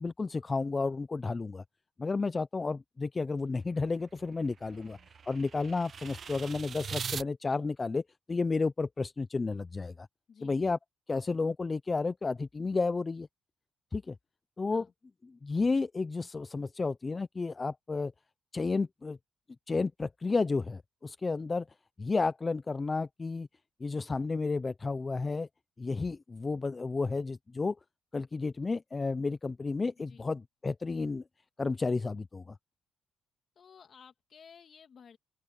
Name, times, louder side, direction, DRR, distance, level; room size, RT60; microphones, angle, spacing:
voice 1, 0.0-1.6 2.0-5.0 5.3-8.0 8.3-10.1 10.4-10.8 11.1-13.3 13.9-14.2 14.6-14.9 15.2-18.1 18.5-19.2 19.7-21.7 22.0-23.5 23.8-25.5 25.8-27.8 28.1-31.2 31.6-32.6, left 3 dB, 25° left, 0.5 m, -32 dB
sound 1, 3.6-7.3, right 6 dB, 50° right, 0.3 m, -42 dB
voice 2, 4.7-5.1 10.3-10.6 14.7-14.9 30.0-30.3 33.6-35.2, left 6 dB, 50° left, 2.6 m, -55 dB
open air
cardioid pair, 90°, 0 cm